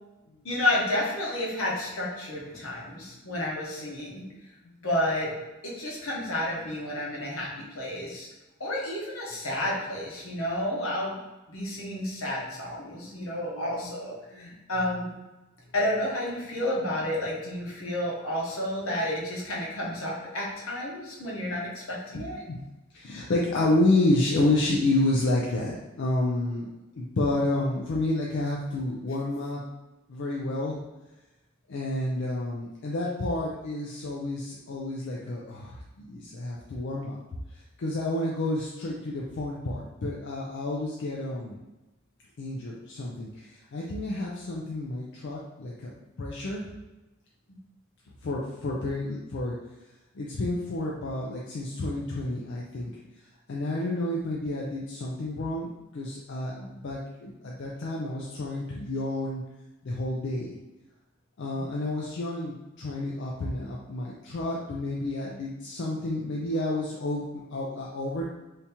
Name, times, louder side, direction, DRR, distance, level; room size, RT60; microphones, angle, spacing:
voice 1, 0.4-4.2 4.8-5.3 5.6-8.3 8.6-11.2 11.5-15.1 15.7-22.4 61.5-61.7, left 1 dB, 80° left, -4 dB, 1.0 m, -31 dB
voice 2, 13.2-14.5 22.1-22.2 22.5-22.6 22.9-26.7 26.9-29.6 30.1-30.8 31.7-37.2 37.8-41.6 42.4-45.9 46.2-46.7 48.2-49.5 50.1-52.9 53.5-59.4 59.8-60.6 61.4-68.3, left 2 dB, 60° left, -3 dB, 0.4 m, -30 dB
3.5 x 2.8 x 2.8 m, 1.1 s
head